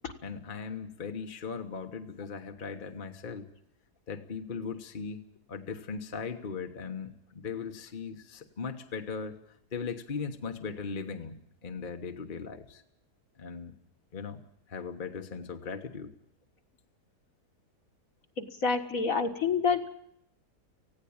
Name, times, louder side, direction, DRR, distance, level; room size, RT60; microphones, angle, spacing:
voice 1, 0.2-3.5 4.1-5.2 5.5-9.3 9.7-12.8 13.4-13.7 14.1-14.4 14.7-16.1, left 5 dB, 35° left, 5 dB, 1.3 m, -38 dB
voice 2, 18.4-19.9, left 5 dB, 60° left, 6 dB, 2.0 m, -28 dB
19.0 x 16.0 x 8.7 m, 0.74 s
omnidirectional pair, 1.7 m